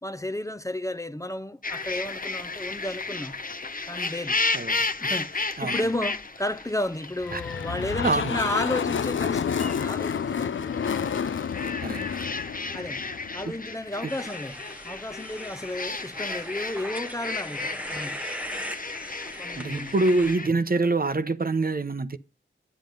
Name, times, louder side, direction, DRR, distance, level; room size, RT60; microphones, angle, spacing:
voice 1, 0.0-3.3 3.9-4.4 5.0-11.0 12.7-13.0 13.3-18.2 19.4-19.9, left 1 dB, 15° left, 0.6 m, -33 dB
sound 1, 1.6-20.5, left 3 dB, 45° left, 0.9 m, -34 dB
voice 2, 4.5-4.9 5.6-5.8 7.3-7.4 8.0-8.4 11.8-12.0 14.0-14.1 19.5-22.2, right 3 dB, 45° right, 0.8 m, -25 dB
sound 2, 7.2-13.6, left 7 dB, 75° left, 0.5 m, -29 dB
sound 3, 14.1-20.3, equal, 5° right, 1.0 m, -40 dB
9.1 x 7.3 x 5.3 m
wide cardioid pair, 55°, 20 cm